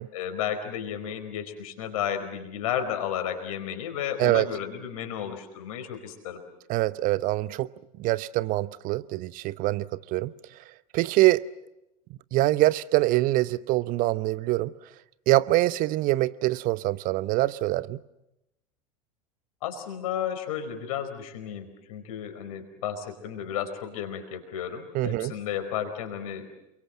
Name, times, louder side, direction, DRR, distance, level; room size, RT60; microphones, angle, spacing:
voice 1, 0.1-6.4 19.6-26.5, left 9 dB, 65° left, 7 dB, 4.7 m, -33 dB
voice 2, 6.7-7.7 8.0-10.3 10.9-11.4 12.3-14.7 15.3-18.0 24.9-25.3, right 18 dB, 45° right, 17 dB, 0.9 m, -24 dB
28.5 x 23.5 x 7.6 m, 0.90 s
figure-of-eight pair, 80°, 19 cm